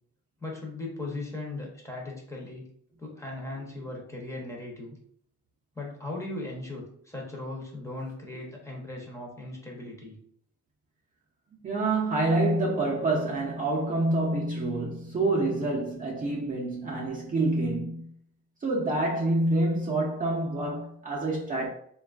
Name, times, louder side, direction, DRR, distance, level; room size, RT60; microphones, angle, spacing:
voice 1, 0.4-2.6 3.0-5.0 5.8-10.2, left 2 dB, 10° left, 0.7 m, -38 dB
voice 2, 11.6-18.1 18.6-21.7, right 2 dB, 30° right, 0.5 m, -27 dB
3.2 x 2.3 x 2.4 m
cardioid pair, 110°, 29 cm